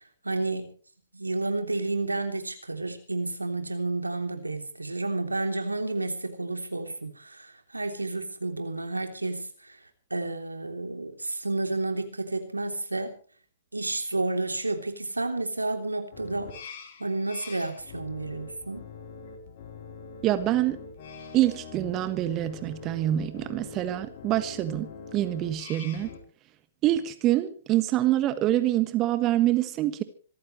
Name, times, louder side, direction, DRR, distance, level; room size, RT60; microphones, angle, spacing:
voice 1, 0.2-0.6 1.1-9.8 10.1-13.1 13.7-16.5 17.0-18.8, right 2 dB, 90° right, 6 dB, 3.2 m, -31 dB
sound 1, 16.1-26.2, left 5 dB, 50° left, 3.8 m, -44 dB
voice 2, 20.2-20.8 21.3-26.1 26.8-30.0, right 14 dB, 30° right, 11 dB, 1.5 m, -26 dB
26.0 x 14.5 x 3.2 m, 0.41 s
figure-of-eight pair, 120°, 0 cm